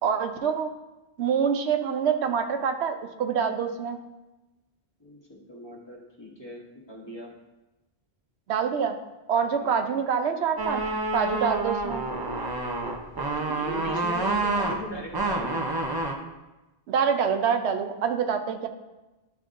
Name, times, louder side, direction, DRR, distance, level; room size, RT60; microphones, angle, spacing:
voice 1, 0.0-0.7 1.2-4.0 8.5-8.9 9.3-10.8 11.1-12.0 16.9-18.7, right 7 dB, 80° right, 6 dB, 0.9 m, -26 dB
voice 2, 5.0-7.3 9.5-9.8 13.1-15.6, equal, 25° left, -2 dB, 1.1 m, -39 dB
sound 1, 10.6-16.1, right 2 dB, 30° right, 0.5 m, -28 dB
10.5 x 5.2 x 2.5 m, 1.1 s
omnidirectional pair, 1.1 m